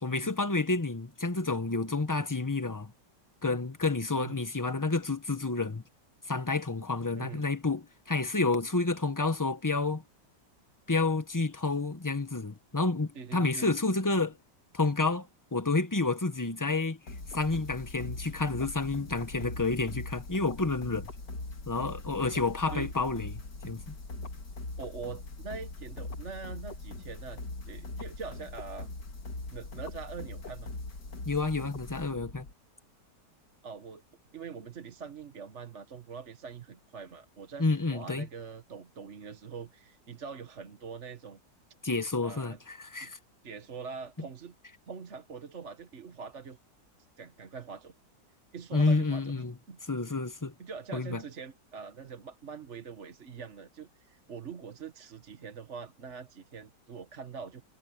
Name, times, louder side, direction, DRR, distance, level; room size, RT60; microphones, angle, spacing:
voice 1, 0.0-2.9 3.4-5.8 6.3-10.0 10.9-14.4 14.7-15.3 15.5-17.0 17.3-21.1 21.7-23.8 31.3-32.4 37.6-38.3 41.8-43.2 48.7-49.5 49.9-50.5 50.9-51.2, left 3 dB, 15° left, 0.7 m, -29 dB
voice 2, 13.1-13.7 22.7-22.9 24.8-28.9 29.5-30.7 33.6-34.0 34.3-41.4 42.2-42.6 43.0-43.1 43.4-44.5 44.9-46.6 47.2-47.9 48.5-49.8 50.6-57.6, right 5 dB, 40° right, 1.6 m, -43 dB
sound 1, 17.1-32.5, left 2 dB, 70° left, 3.3 m, -41 dB
omnidirectional pair, 1.9 m